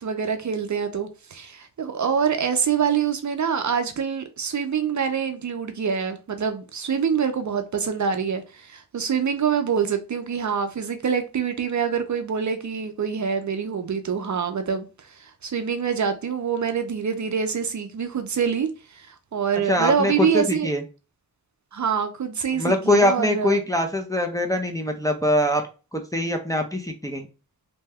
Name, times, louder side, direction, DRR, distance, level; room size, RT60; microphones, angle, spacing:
voice 1, 0.0-14.9 15.4-20.7 21.7-23.6, right 7 dB, 50° right, 0.5 m, -25 dB
voice 2, 19.7-20.8 22.6-25.6 25.9-27.3, left 1 dB, 10° left, 0.5 m, -23 dB
2.8 x 2.1 x 3.4 m
wide cardioid pair, 75°, 37 cm